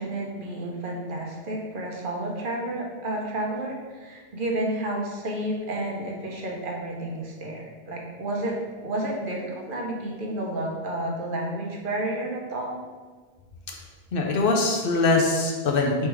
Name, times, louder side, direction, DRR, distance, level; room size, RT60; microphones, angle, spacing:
voice 1, 0.0-8.5 8.8-12.8, right 1 dB, 60° right, -1 dB, 0.8 m, -31 dB
voice 2, 14.1-16.1, left 3 dB, 65° left, 1 dB, 0.7 m, -22 dB
3.3 x 3.2 x 4.6 m, 1.4 s
omnidirectional pair, 1.1 m